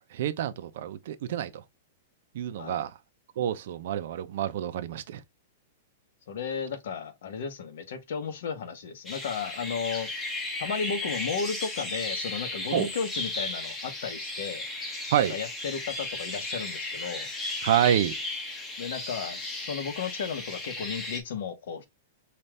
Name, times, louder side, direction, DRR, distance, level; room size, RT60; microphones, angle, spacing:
voice 1, 0.0-1.5 2.3-2.9 3.4-5.2 12.7-12.9 15.1-15.4 17.6-18.2, right 11 dB, 55° right, 0.6 m, -27 dB
voice 2, 6.3-10.1 10.6-14.7 15.3-17.3 18.8-21.8, left 6 dB, 65° left, 1.2 m, -34 dB
sound 1, 9.1-21.2, left 2 dB, 10° left, 0.9 m, -35 dB
5.4 x 2.5 x 3.3 m
supercardioid pair, 170°, 0 cm